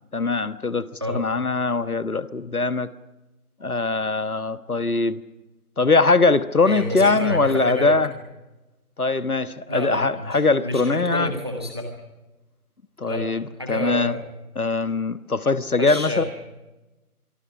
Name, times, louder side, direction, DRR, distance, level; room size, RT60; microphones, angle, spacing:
voice 1, 0.1-2.9 3.6-5.2 5.8-8.1 9.0-11.3 13.0-13.4 13.7-14.2 14.5-16.2, left 3 dB, 70° left, 14 dB, 1.5 m, -21 dB
voice 2, 1.0-1.3 6.6-7.9 9.7-11.9 13.1-13.2 13.6-14.2 15.8-16.2, left 1 dB, 15° right, 3 dB, 1.6 m, -29 dB
26.5 x 23.5 x 6.0 m, 1.1 s
figure-of-eight pair, 175°, 46 cm